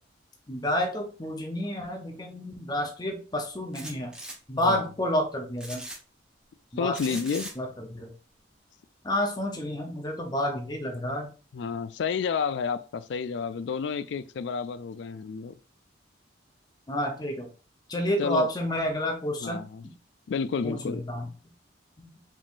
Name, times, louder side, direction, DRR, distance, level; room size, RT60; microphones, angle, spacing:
voice 1, 0.5-4.1 4.5-5.8 6.7-7.2 7.6-8.1 9.0-11.3 16.9-17.5 17.9-19.6 20.6-21.3 22.0-22.1, equal, 20° left, 0.7 m, -30 dB
sound 1, 3.7-4.4 5.6-6.0 6.9-7.5, right 1 dB, 5° right, 0.9 m, -39 dB
voice 2, 4.5-4.9 6.8-7.5 11.5-15.5 18.2-18.5 19.4-19.8 20.3-21.0, left 6 dB, 65° left, 0.3 m, -30 dB
5.0 x 3.6 x 2.5 m
head